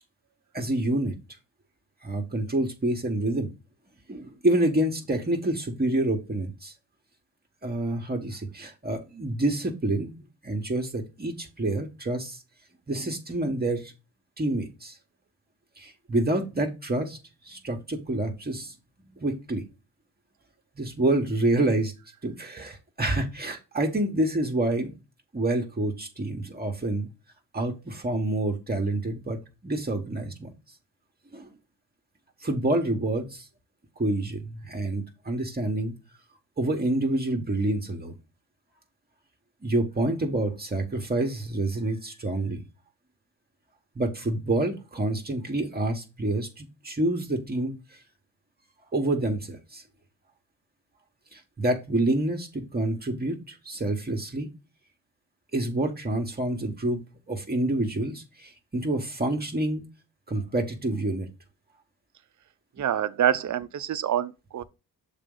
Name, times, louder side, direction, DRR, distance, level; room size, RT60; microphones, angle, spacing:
voice 1, 0.5-1.1 2.0-3.5 4.1-6.7 7.6-10.1 10.4-12.4 12.9-13.9 14.4-14.9 15.8-17.2 17.4-18.7 19.2-19.6 20.8-21.9 22.2-24.9 25.3-27.1 27.5-30.5 31.3-31.5 32.4-33.5 34.0-35.9 36.6-38.1 39.6-42.6 43.9-48.0 48.9-49.8 51.3-54.5 55.5-57.0 57.3-59.8 60.3-61.3, right 1 dB, 25° right, 1.2 m, -27 dB
voice 2, 62.8-64.6, right 10 dB, 45° right, 0.6 m, -26 dB
6.6 x 4.1 x 3.8 m
cardioid pair, 90°, 40 cm